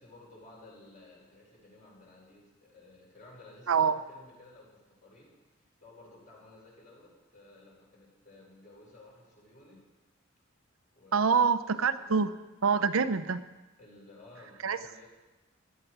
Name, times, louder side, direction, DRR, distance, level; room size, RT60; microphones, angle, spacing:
voice 1, 0.0-9.8 10.9-12.2 13.8-15.1, left 2 dB, 40° left, -3 dB, 5.4 m, -55 dB
voice 2, 3.7-4.0 11.1-12.3 12.6-13.4 14.6-14.8, right 5 dB, 80° right, 11 dB, 0.7 m, -25 dB
17.0 x 12.5 x 4.9 m, 1.1 s
head